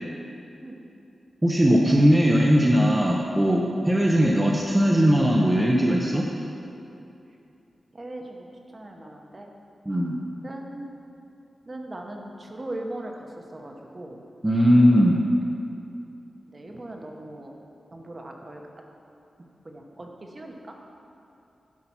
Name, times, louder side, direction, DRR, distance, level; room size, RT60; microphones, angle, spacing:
voice 1, 1.4-6.3 9.9-10.2 14.4-15.2, equal, 15° right, -2 dB, 0.7 m, -19 dB
voice 2, 7.9-9.5 10.4-10.9 11.7-14.2 16.5-17.5 17.9-18.6 19.6-20.8, right 1 dB, 30° right, 1 dB, 1.0 m, -39 dB
11.0 x 5.7 x 5.7 m, 2.7 s
wide cardioid pair, 130°, 0 cm